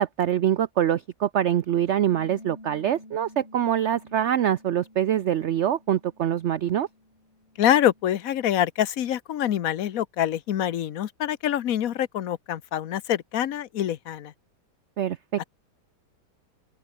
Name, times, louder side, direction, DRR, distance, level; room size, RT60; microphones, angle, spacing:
voice 1, 0.0-6.9 15.0-15.4, right 10 dB, 65° right, 0.7 m, -24 dB
Bass guitar, 2.1-8.3, left 1 dB, 35° left, 6.6 m, -50 dB
voice 2, 7.6-14.3, left 11 dB, 60° left, 1.2 m, -25 dB
open air
omnidirectional pair, 1.8 m